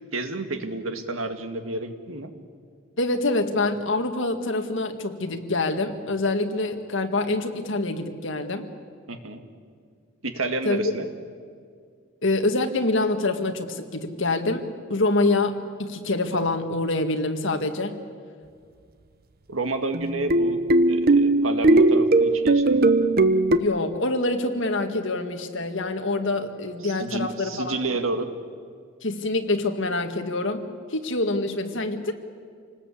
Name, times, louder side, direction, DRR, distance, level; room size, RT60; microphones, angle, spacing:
voice 1, 0.1-2.3 9.1-9.4 10.2-11.1 19.5-22.9 26.8-28.3, right 2 dB, 80° right, 7 dB, 2.0 m, -30 dB
voice 2, 3.0-8.7 10.7-10.8 12.2-14.6 14.9-18.0 23.6-27.8 29.0-32.1, left 2 dB, 65° left, 5 dB, 1.9 m, -26 dB
sound 1, 19.9-23.6, right 2 dB, 50° right, 1.0 m, -19 dB
27.0 x 19.5 x 8.5 m, 2.1 s
head